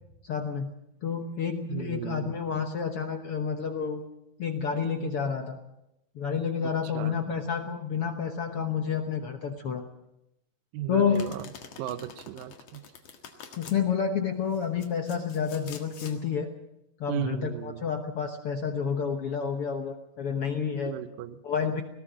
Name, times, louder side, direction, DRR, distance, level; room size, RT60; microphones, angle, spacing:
voice 1, 0.2-0.7 1.0-4.0 4.4-5.6 6.1-9.8 10.9-11.2 13.6-16.5 17.0-20.9 21.4-21.8, left 6 dB, 70° left, 5 dB, 1.4 m, -29 dB
voice 2, 1.7-2.4 6.8-7.2 10.7-11.5 11.8-12.8 17.1-17.9 20.9-21.4, right 13 dB, 80° right, 12 dB, 2.6 m, -35 dB
Domestic sounds home sounds, 11.1-13.8 14.5-16.2, left 6 dB, 50° left, 2.6 m, -46 dB
19.0 x 18.0 x 7.4 m, 0.86 s
omnidirectional pair, 4.1 m